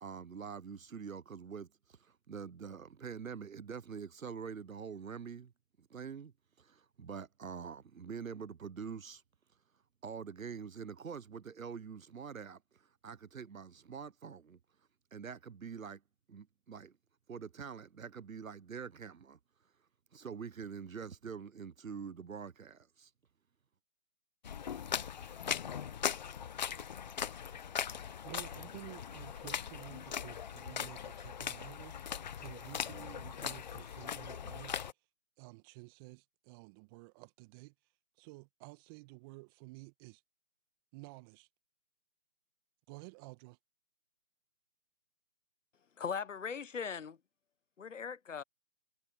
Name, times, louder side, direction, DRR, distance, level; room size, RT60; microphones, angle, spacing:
voice 1, 0.0-5.5 5.8-6.3 6.6-9.2 10.0-14.6 15.1-16.0 16.3-17.0 17.3-19.4 20.1-23.1, right 6 dB, 65° right, 1.1 m, -45 dB
sound 1, 24.4-34.9, left 8 dB, 30° left, 1.0 m, -40 dB
voice 2, 28.2-34.8 35.4-37.7 38.2-40.2 40.9-41.5 42.9-43.6, right 26 dB, 15° right, 1.7 m, -52 dB
voice 3, 46.0-47.2 47.8-48.4, left 6 dB, 55° left, 1.1 m, -39 dB
figure-of-eight pair, 145°, 44 cm